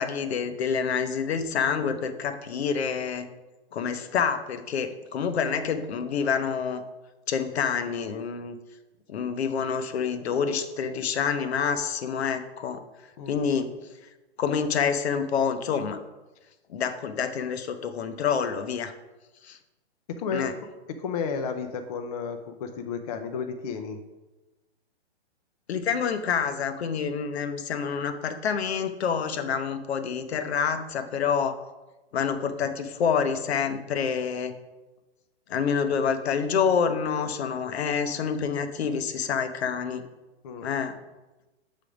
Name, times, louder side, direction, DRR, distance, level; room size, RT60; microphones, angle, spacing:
voice 1, 0.0-3.3 3.7-6.8 7.3-8.6 9.1-12.8 13.3-13.7 14.4-16.0 16.7-18.9 19.4-19.6 20.3-20.5 25.7-31.6 32.1-34.5 35.5-40.0 40.6-41.0, left 6 dB, 70° left, 9 dB, 0.8 m, -27 dB
voice 2, 20.2-20.5 21.0-24.0 40.4-40.7, left 6 dB, 35° left, 6 dB, 0.5 m, -32 dB
7.4 x 3.5 x 4.9 m, 1.1 s
hypercardioid pair, 155°, 33 cm